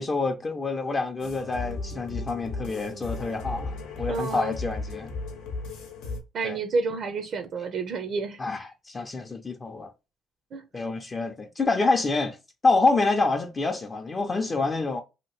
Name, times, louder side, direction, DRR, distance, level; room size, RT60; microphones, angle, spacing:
voice 1, 0.0-3.7 4.0-5.1 6.4-6.6 8.4-9.9 10.7-12.4 12.6-15.0, left 3 dB, 30° left, 0.5 m, -27 dB
sound 1, 1.2-6.2, left 3 dB, 90° left, 0.9 m, -35 dB
voice 2, 4.1-4.6 6.3-8.4 10.5-10.6, right 4 dB, 60° right, 0.5 m, -29 dB
2.9 x 2.6 x 2.9 m
cardioid pair, 90°, 0 cm